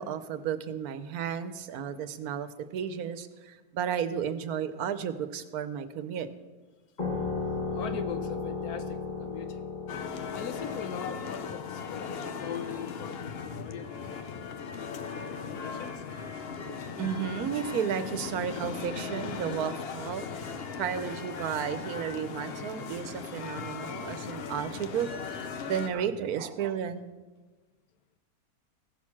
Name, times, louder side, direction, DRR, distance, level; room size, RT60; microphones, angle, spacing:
voice 1, 0.0-6.3 17.0-20.4 20.8-25.1 25.6-27.1, right 8 dB, 80° right, 12 dB, 1.2 m, -33 dB
sound 1, 7.0-16.2, left 4 dB, 30° left, 1.5 m, -37 dB
voice 2, 7.7-9.7 10.3-16.0, left 7 dB, 80° left, 9 dB, 1.4 m, -41 dB
sound 2, 9.9-25.9, left 5 dB, 55° left, 0.8 m, -38 dB
16.0 x 6.4 x 5.9 m, 1.3 s
omnidirectional pair, 1.6 m